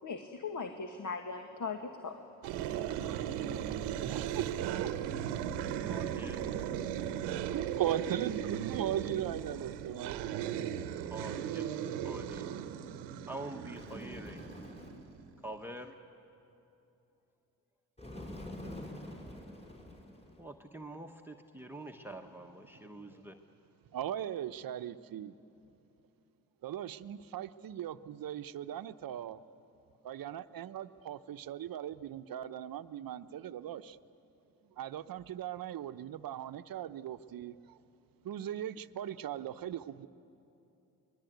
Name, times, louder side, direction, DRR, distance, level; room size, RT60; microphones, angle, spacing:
voice 1, 0.0-2.2, left 4 dB, 50° left, 5 dB, 1.7 m, -39 dB
sound 1, 2.4-15.3, right 10 dB, 85° right, 1.0 m, -37 dB
voice 2, 2.8-4.9 7.0-10.2 23.9-25.3 26.6-29.4 30.0-34.0 34.8-37.8 38.2-40.1, right 10 dB, 60° right, 12 dB, 0.9 m, -39 dB
voice 3, 5.9-6.9 7.2-7.4 11.1-12.4 13.3-14.4 15.4-15.9 20.4-23.3, right 1 dB, 5° right, 5 dB, 1.3 m, -46 dB
Bird, 13.7-15.1 18.0-20.5, left 1 dB, 15° left, 6.1 m, -46 dB
23.0 x 21.0 x 9.3 m, 2.8 s
supercardioid pair, 55°, 40 cm